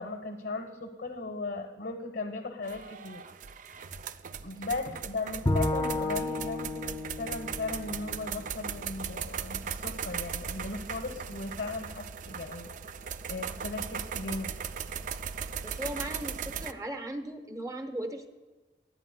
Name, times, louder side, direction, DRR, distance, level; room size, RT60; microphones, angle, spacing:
voice 1, 0.0-3.2 4.4-12.7 13.3-14.5, left 3 dB, 75° left, 3 dB, 1.0 m, -37 dB
sound 1, 2.6-16.7, right 7 dB, 45° right, 0.4 m, -38 dB
Bowed string instrument, 5.5-8.7, left 2 dB, 25° left, 0.6 m, -32 dB
voice 2, 15.6-18.3, right 1 dB, 20° right, 6 dB, 0.9 m, -37 dB
21.5 x 8.6 x 2.2 m, 1.3 s
head